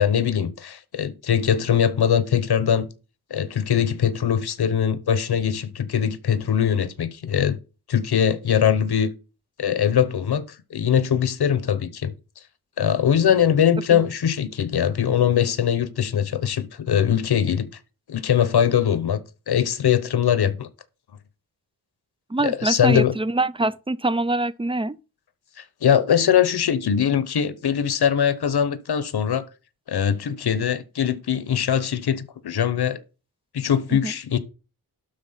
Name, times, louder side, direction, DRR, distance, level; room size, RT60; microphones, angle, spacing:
voice 1, 0.0-2.9 3.3-7.6 7.9-9.1 9.6-10.4 10.7-12.1 12.8-17.7 18.1-20.7 22.4-23.1 25.8-29.4 29.9-33.0 33.5-34.4, left 8 dB, 80° left, 1.0 m, -21 dB
voice 2, 22.3-25.0 33.9-34.1, right 2 dB, 15° right, 0.4 m, -24 dB
12.0 x 4.3 x 5.7 m
wide cardioid pair, 125°, 38 cm